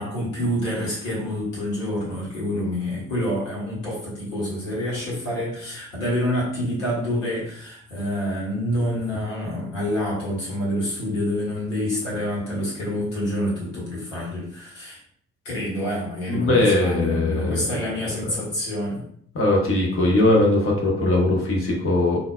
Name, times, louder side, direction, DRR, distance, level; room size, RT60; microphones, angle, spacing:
voice 1, 0.0-15.0 15.4-19.0, left 1 dB, 80° left, -5 dB, 1.2 m, -27 dB
voice 2, 16.3-17.5 18.2-18.3 19.3-22.2, left 2 dB, 35° left, -2 dB, 1.0 m, -20 dB
3.7 x 2.5 x 2.2 m, 0.64 s
figure-of-eight pair, 40°, 38 cm